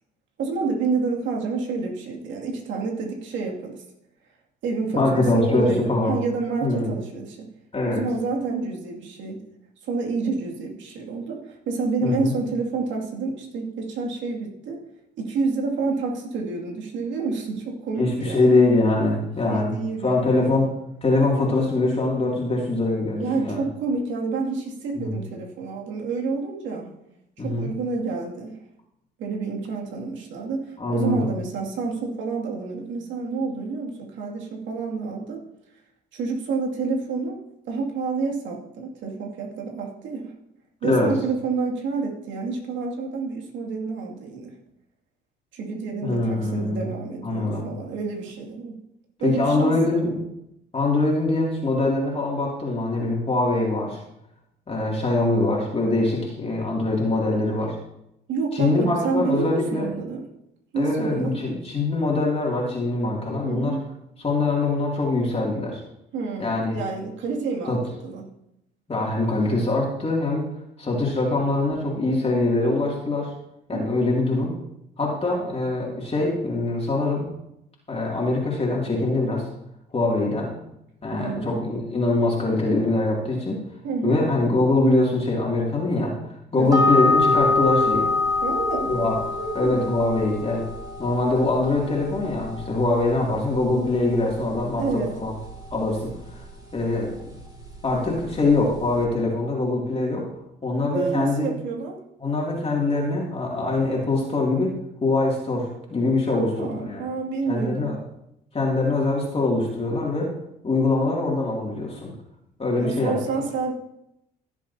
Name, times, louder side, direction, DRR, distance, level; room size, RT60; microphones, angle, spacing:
voice 1, 0.4-3.8 4.6-7.4 7.9-9.4 9.8-14.8 15.2-18.6 19.0-19.1 19.5-20.6 23.2-26.9 27.4-28.6 29.2-35.4 36.1-37.4 37.7-40.3 40.8-44.5 45.5-48.8 49.2-49.7 58.3-60.2 60.7-61.4 63.4-63.8 66.1-68.3 73.7-74.2 81.1-81.6 83.8-84.2 86.5-86.8 88.4-89.1 89.4-89.9 94.8-95.1 100.9-102.0 106.3-107.9 112.8-113.7, right 4 dB, 70° right, -1 dB, 2.4 m, -29 dB
voice 2, 4.9-6.2 6.6-6.9 7.7-8.0 12.0-12.3 18.0-19.7 20.0-20.7 21.0-23.6 25.0-25.1 27.4-27.7 30.8-31.3 40.8-41.1 46.0-46.9 47.2-47.7 49.2-50.2 50.7-54.0 54.7-57.7 58.5-59.9 60.8-63.8 64.2-65.8 66.4-66.8 67.7-67.8 68.9-70.4 70.8-73.3 73.7-74.5 75.0-77.3 77.9-79.5 79.9-80.5 81.0-83.6 84.0-86.1 86.5-88.1 88.9-89.2 89.5-90.7 91.0-95.3 95.7-96.4 96.7-97.1 97.8-100.3 100.6-101.5 102.2-104.7 105.0-107.0 107.5-108.0 108.5-110.3 110.6-112.1 112.6-113.4, left 2 dB, 30° left, -3 dB, 2.6 m, -23 dB
sound 1, 86.7-99.0, left 3 dB, 20° right, 2.7 m, -27 dB
15.5 x 7.3 x 2.8 m, 0.82 s
supercardioid pair, 65°, 20 cm